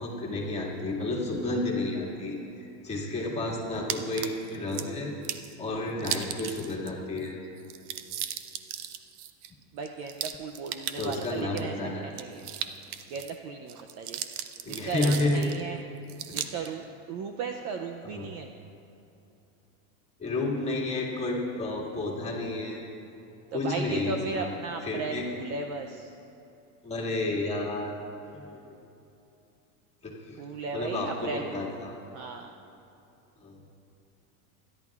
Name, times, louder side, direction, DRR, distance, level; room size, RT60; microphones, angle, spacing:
voice 1, 0.0-5.1 5.6-7.3 11.0-12.1 14.6-15.5 16.3-16.7 18.0-18.3 20.2-22.9 23.5-24.5 24.8-25.3 26.8-28.0 28.3-28.8 30.0-30.4 30.7-31.9 33.4-33.6, left 2 dB, 15° left, -4 dB, 2.0 m, -31 dB
sound 1, 3.9-4.9 5.2-5.5 6.0-6.9 7.2-7.3 7.6-11.6 12.1-13.3 13.7-15.6 16.1-16.7, right 11 dB, 85° right, 0.9 m, -36 dB
voice 2, 9.7-12.5 13.1-14.2 14.7-15.8 16.3-18.5 23.5-26.1 30.4-31.7 32.1-32.5, right 4 dB, 35° right, 4 dB, 0.5 m, -36 dB
25.5 x 11.0 x 2.4 m, 2.8 s
supercardioid pair, 145°, 44 cm